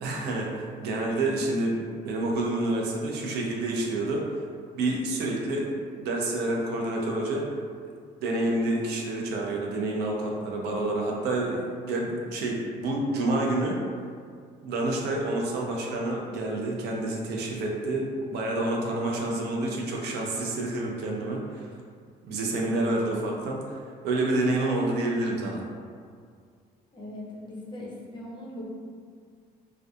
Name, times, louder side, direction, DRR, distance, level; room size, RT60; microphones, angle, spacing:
voice 1, 0.0-4.4 4.7-5.7 6.0-7.5 8.2-13.8 14.6-21.7 22.2-23.8 24.0-25.6, right 2 dB, 80° right, -1 dB, 0.5 m, -28 dB
voice 2, 19.1-19.8 22.7-23.2 26.9-28.7, left 1 dB, 25° left, -5 dB, 0.6 m, -40 dB
2.5 x 2.3 x 2.3 m, 2.1 s
cardioid pair, 110°, 17 cm